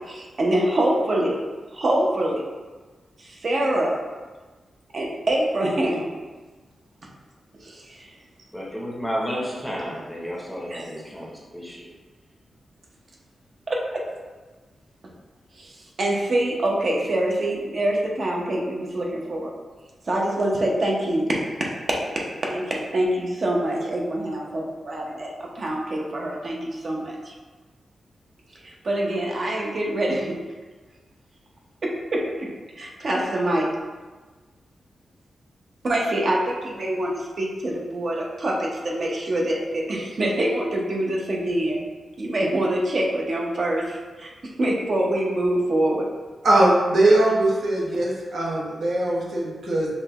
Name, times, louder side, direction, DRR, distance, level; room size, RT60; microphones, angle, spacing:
voice 1, 0.1-1.4 1.7-2.4 3.2-3.9 4.9-6.0 7.6-8.1 10.7-10.9 13.7-14.0 15.6-15.7 16.0-19.5 20.1-27.3 28.6-30.4 31.8-32.5 32.8-33.7 35.8-41.8 42.2-44.3 44.6-46.1, right 1 dB, 45° right, -2 dB, 0.7 m, -25 dB
voice 2, 8.5-11.8, equal, 5° left, -4 dB, 0.7 m, -31 dB
voice 3, 46.4-49.9, right 1 dB, 75° right, -4 dB, 1.0 m, -20 dB
5.6 x 2.2 x 2.9 m, 1.3 s
wide cardioid pair, 135°, 0 cm